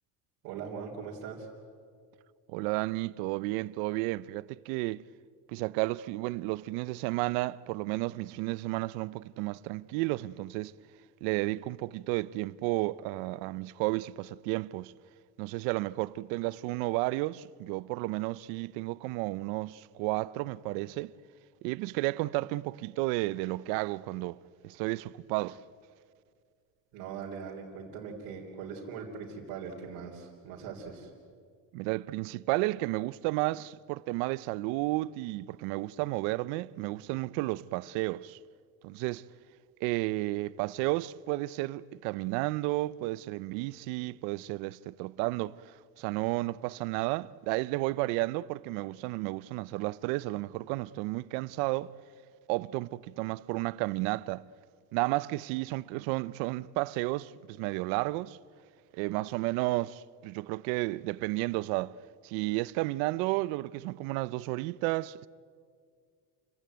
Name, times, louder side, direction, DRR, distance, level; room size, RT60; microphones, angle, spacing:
voice 1, 0.4-1.5 26.9-31.1, right 6 dB, 55° right, 3.3 m, -41 dB
voice 2, 2.5-5.1 5.5-10.7 11.2-14.9 15.4-21.1 21.6-24.4 24.6-25.6 31.7-38.4 38.8-39.3 39.8-51.9 52.5-54.4 54.9-58.4 58.9-62.0 62.2-65.3, right 20 dB, 75° right, 0.6 m, -32 dB
28.0 x 15.5 x 9.2 m
cardioid pair, 175°, 37 cm